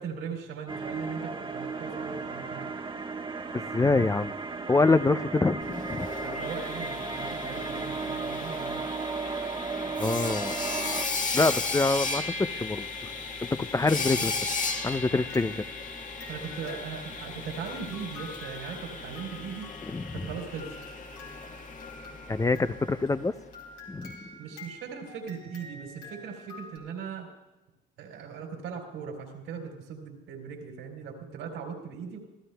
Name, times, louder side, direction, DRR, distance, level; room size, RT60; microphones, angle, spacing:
voice 1, 0.0-2.7 6.2-8.8 16.3-19.7 20.1-20.7 24.4-27.3 28.0-32.2, right 6 dB, 80° right, 2 dB, 3.5 m, -39 dB
sound 1, 0.7-11.1, right 4 dB, 25° right, 1.2 m, -35 dB
voice 2, 3.5-4.4 4.7-6.1 10.0-10.6 11.3-12.9 13.6-14.3 14.8-15.6 19.9-20.0 22.3-23.3 23.9-24.1, left 3 dB, 15° left, 14 dB, 0.5 m, -25 dB
Sawing, 5.6-23.4, left 4 dB, 40° left, 1.5 m, -36 dB
sound 2, 15.3-26.8, left 2 dB, 90° left, 3.7 m, -48 dB
25.5 x 14.5 x 2.3 m, 1.0 s
supercardioid pair, 80°, 21 cm